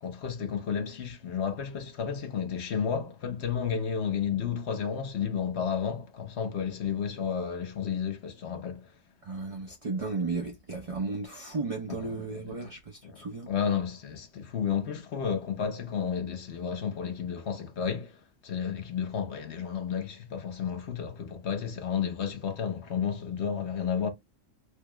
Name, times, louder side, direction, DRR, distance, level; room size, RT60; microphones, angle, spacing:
voice 1, 0.0-8.9 11.9-12.7 13.0-24.1, left 7 dB, 60° left, 1.1 m, -32 dB
voice 2, 9.2-13.5, right 3 dB, 40° right, 0.5 m, -34 dB
3.2 x 2.4 x 3.0 m
omnidirectional pair, 1.4 m